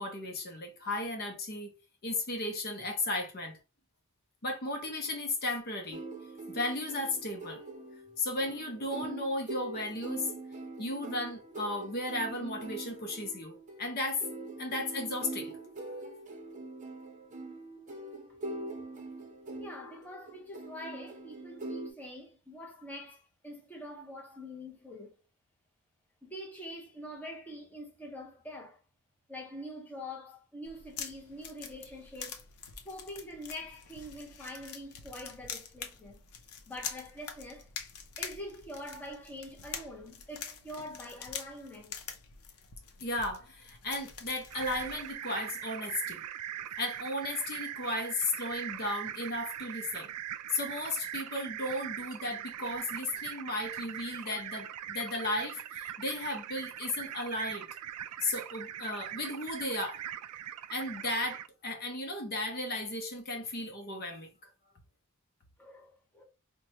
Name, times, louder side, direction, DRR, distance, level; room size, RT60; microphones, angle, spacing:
voice 1, 0.0-1.7 2.0-3.6 4.4-6.0 6.5-7.6 8.2-10.3 10.8-14.2 14.6-15.5 43.0-46.2 46.8-50.1 50.5-57.7 58.2-60.0 60.7-64.3, left 2 dB, 45° left, 0.7 m, -35 dB
sound 1, 5.9-21.9, right 2 dB, 35° right, 0.7 m, -43 dB
voice 2, 19.6-25.1 26.2-28.8 29.3-32.4 32.8-36.2 36.7-37.7 38.2-42.0 65.6-66.2, left 1 dB, 5° left, 0.7 m, -45 dB
sound 2, 30.6-45.1, left 7 dB, 80° left, 0.6 m, -45 dB
sound 3, 44.5-61.5, right 11 dB, 90° right, 0.3 m, -41 dB
4.5 x 2.2 x 2.8 m
head